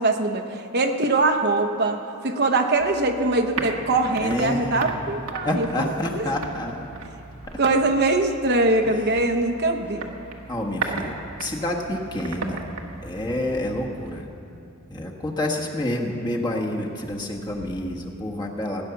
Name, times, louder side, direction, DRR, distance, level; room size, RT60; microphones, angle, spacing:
voice 1, 0.0-6.1 7.6-10.1, right 2 dB, 50° right, 5 dB, 0.9 m, -22 dB
sound 1, 2.8-14.2, right 3 dB, 85° right, 1.4 m, -37 dB
voice 2, 4.2-5.0 5.4-7.0 7.5-7.6 10.5-11.1 11.4-12.6 13.0-14.3 14.9-18.8, left 1 dB, 20° left, -1 dB, 1.4 m, -28 dB
17.0 x 9.8 x 7.0 m, 2.7 s
head